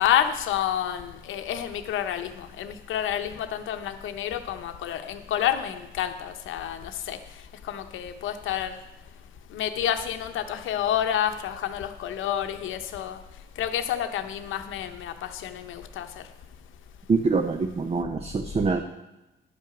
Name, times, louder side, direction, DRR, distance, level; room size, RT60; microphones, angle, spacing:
voice 1, 0.0-7.2 7.7-8.7 9.5-13.2 13.6-16.1, left 10 dB, 80° left, 8 dB, 0.8 m, -29 dB
voice 2, 17.1-18.8, right 4 dB, 30° right, 6 dB, 0.7 m, -25 dB
10.5 x 5.7 x 6.0 m, 1.0 s
cardioid pair, 90°, 20 cm